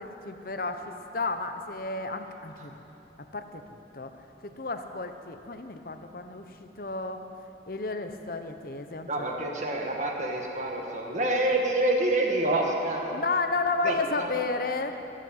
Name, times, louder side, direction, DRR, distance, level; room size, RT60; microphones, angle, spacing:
voice 1, 0.0-2.7 3.3-4.1 4.4-7.2 7.7-9.3 13.1-15.0, left 3 dB, 50° left, 7 dB, 1.0 m, -32 dB
voice 2, 9.1-13.2 13.8-14.3, right 1 dB, 40° right, 0 dB, 1.8 m, -27 dB
22.0 x 7.7 x 8.1 m, 2.9 s
head